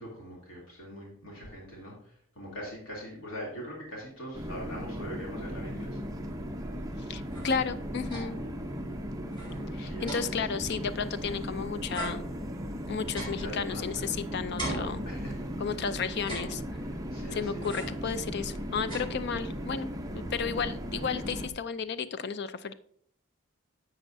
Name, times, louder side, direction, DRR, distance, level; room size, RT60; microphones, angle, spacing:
voice 1, 0.0-1.9 2.4-6.0 9.8-10.3 13.4-14.0 15.1-15.3 17.1-17.7, equal, 70° left, -3 dB, 2.9 m, -42 dB
sound 1, 4.3-21.5, equal, 15° right, 0.7 m, -37 dB
voice 2, 7.1-8.3 9.7-12.3 12.9-15.1 15.6-16.6 17.3-19.9 20.1-22.7, left 6 dB, 50° left, 13 dB, 0.4 m, -33 dB
sound 2, 7.1-8.5 8.9-9.0 9.3-11.5 11.9-14.2 14.6-15.7 16.1-17.0 17.6-18.1 18.5-19.6, right 1 dB, 20° left, 3.7 m, -41 dB
10.5 x 7.7 x 2.6 m, 0.62 s
head